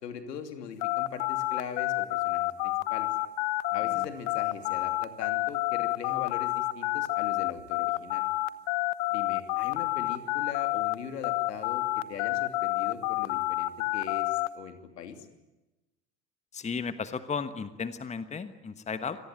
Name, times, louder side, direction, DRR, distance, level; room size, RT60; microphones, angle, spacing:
voice 1, 0.0-3.1 3.7-8.2 9.1-15.3, left 7 dB, 70° left, 7 dB, 3.0 m, -41 dB
sound 1, 0.8-11.0 11.2-14.5, left 19 dB, 50° left, 1.1 m, -29 dB
voice 2, 16.5-19.2, left 5 dB, 15° left, 12 dB, 1.3 m, -34 dB
26.0 x 19.0 x 9.2 m, 1.0 s
figure-of-eight pair, 80°, 50 cm